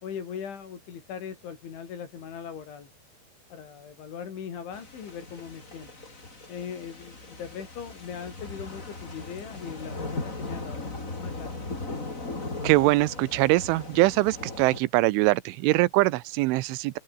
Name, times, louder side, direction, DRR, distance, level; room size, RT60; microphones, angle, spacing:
voice 1, 0.0-2.9 3.5-5.9 6.5-11.5, left 7 dB, 75° left, 6.2 m, -40 dB
sound 1, 4.7-14.8, left 2 dB, 15° left, 4.0 m, -38 dB
voice 2, 12.6-17.0, right 20 dB, 85° right, 3.3 m, -23 dB
open air
omnidirectional pair, 5.5 m